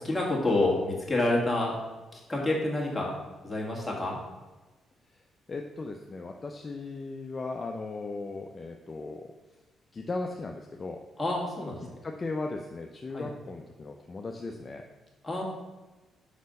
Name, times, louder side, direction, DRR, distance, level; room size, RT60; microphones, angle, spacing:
voice 1, 0.0-1.8 2.1-3.1 3.4-4.2 11.2-11.8 13.1-13.3 15.2-15.4, left 2 dB, 10° left, -4 dB, 1.9 m, -28 dB
voice 2, 5.5-9.3 9.9-11.0 12.0-14.8, left 3 dB, 35° left, 3 dB, 0.5 m, -37 dB
5.2 x 4.1 x 5.3 m, 1.1 s
cardioid pair, 90°, 0 cm